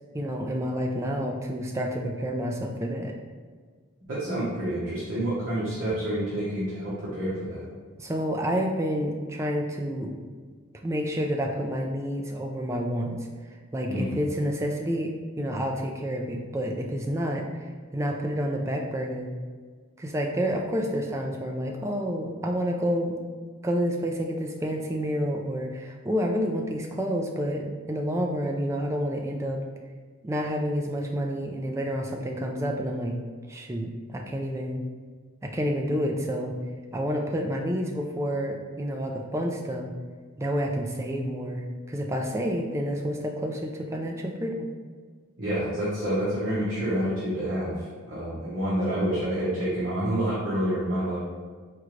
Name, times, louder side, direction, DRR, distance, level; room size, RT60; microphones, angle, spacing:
voice 1, 0.1-3.1 8.0-10.1 10.8-13.2 13.7-19.3 20.0-23.1 23.6-29.6 30.2-33.1 33.5-34.8 35.4-36.6 36.9-39.9 40.4-44.7, equal, 15° right, 1 dB, 0.3 m, -29 dB
voice 2, 4.1-7.6 13.8-14.1 45.4-47.7 48.1-51.2, right 1 dB, 60° right, -10 dB, 1.0 m, -28 dB
4.4 x 2.5 x 3.1 m, 1.5 s
head